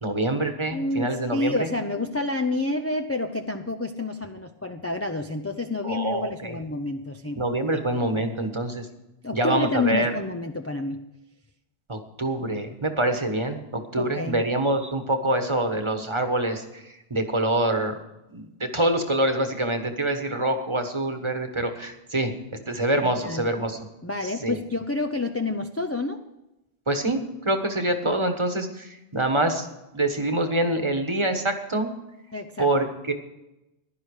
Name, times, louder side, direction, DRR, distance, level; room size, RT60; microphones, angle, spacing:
voice 1, 0.0-1.7 2.0-2.1 5.8-6.5 7.4-8.9 9.3-10.1 11.9-18.0 18.3-22.3 22.7-23.8 24.4-24.6 26.9-29.7 29.9-31.9 32.6-33.1, right 1 dB, 30° right, 6 dB, 1.4 m, -25 dB
voice 2, 0.7-7.4 7.7-7.8 9.2-11.0 14.0-14.4 23.2-23.5 24.0-26.2 32.3-32.7, left 2 dB, 15° left, 5 dB, 0.5 m, -29 dB
15.5 x 11.5 x 4.9 m, 0.93 s
omnidirectional pair, 1.1 m